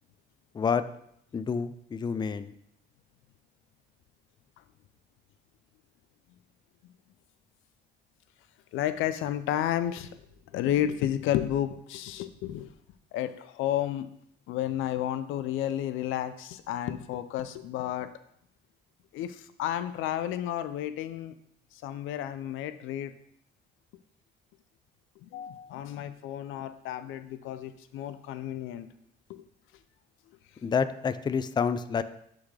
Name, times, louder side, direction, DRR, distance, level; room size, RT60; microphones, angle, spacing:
voice 1, 1.3-2.5 30.6-32.0, left 6 dB, 20° left, 13 dB, 0.3 m, -28 dB
voice 2, 8.7-10.2 10.5-12.7 13.1-14.1 14.5-18.1 19.1-21.3 21.7-23.1 25.2-28.9 29.3-29.5, left 11 dB, 90° left, 12 dB, 0.4 m, -31 dB
9.7 x 3.7 x 3.2 m, 0.72 s
cardioid pair, 90°, 20 cm